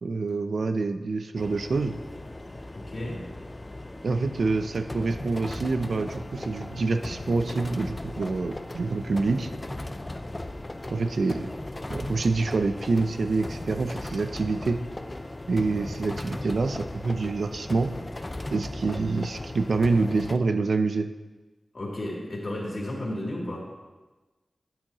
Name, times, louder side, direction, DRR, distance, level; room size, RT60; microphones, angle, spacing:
voice 1, 0.0-1.9 4.0-9.5 10.9-11.4 11.9-14.8 15.5-17.9 18.5-21.1, right 3 dB, 75° right, 8 dB, 0.6 m, -26 dB
sound 1, 1.3-20.4, left 1 dB, 25° left, 0.6 m, -37 dB
voice 2, 2.7-3.3 21.7-23.6, left 1 dB, 55° left, -4 dB, 3.0 m, -33 dB
12.5 x 8.7 x 3.0 m, 1.2 s
wide cardioid pair, 65°, 0 cm